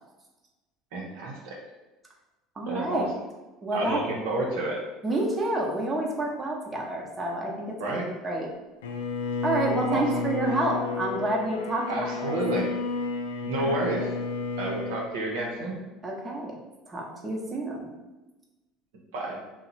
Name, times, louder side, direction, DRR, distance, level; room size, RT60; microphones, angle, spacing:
voice 1, 0.9-1.6 2.7-3.0 3.7-4.8 7.8-8.1 9.9-10.2 11.9-12.7 13.4-14.1 14.6-15.7 19.1-19.4, right 2 dB, 75° right, -2 dB, 0.6 m, -30 dB
voice 2, 2.6-3.1 3.6-4.0 5.0-8.0 8.2-8.5 9.4-12.4 13.6-13.8 16.0-16.6 16.9-17.9, right 2 dB, 25° right, -1 dB, 0.8 m, -29 dB
Bowed string instrument, 8.8-15.1, left 4 dB, 85° left, 0.3 m, -31 dB
2.8 x 2.1 x 4.0 m, 1.1 s
hypercardioid pair, 75°, 0 cm